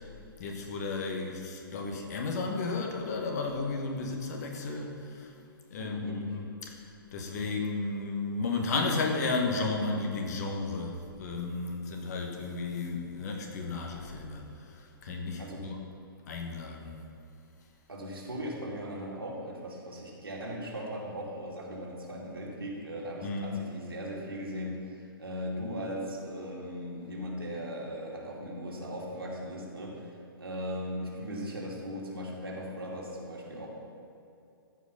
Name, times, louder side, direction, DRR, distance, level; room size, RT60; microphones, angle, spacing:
voice 1, 0.4-5.3 5.7-15.8 16.3-17.0 23.2-23.6, left 3 dB, 45° left, 2 dB, 1.5 m, -33 dB
voice 2, 5.8-6.3 15.4-15.7 17.9-33.7, equal, 75° right, -3 dB, 2.4 m, -38 dB
14.0 x 5.3 x 5.7 m, 2.6 s
figure-of-eight pair, 125°, 12 cm